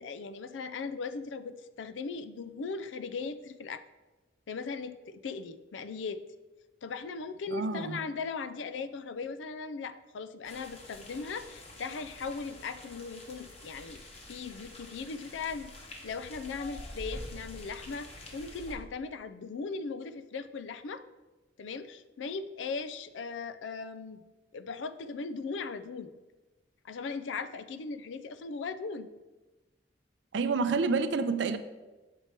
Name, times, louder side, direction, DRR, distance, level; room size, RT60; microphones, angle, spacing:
voice 1, 0.0-3.8 4.5-6.2 6.8-14.0 14.3-21.0 21.6-24.2 24.5-26.1 26.8-29.1, left 4 dB, 90° left, 0.4 m, -38 dB
voice 2, 7.5-8.0 30.3-31.6, right 4 dB, 70° right, 0.5 m, -28 dB
sound 1, 10.4-18.7, left 1 dB, 35° left, 1.0 m, -47 dB
6.9 x 4.5 x 4.4 m
head